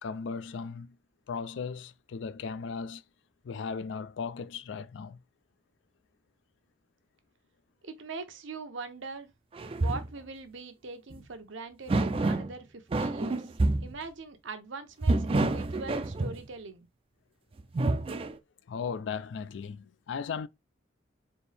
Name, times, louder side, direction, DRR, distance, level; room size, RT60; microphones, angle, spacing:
voice 1, 0.0-1.0 1.3-3.0 3.4-5.2 18.7-20.5, left 5 dB, 70° left, 0.3 m, -37 dB
voice 2, 7.8-9.3 9.8-13.5 13.8-16.9, right 4 dB, 80° right, 0.8 m, -42 dB
sound 1, 9.5-10.1 11.1-11.2 11.9-12.5 12.9-14.0 15.0-16.5 17.6-18.4, right 2 dB, 30° right, 0.3 m, -28 dB
4.3 x 2.7 x 3.3 m
head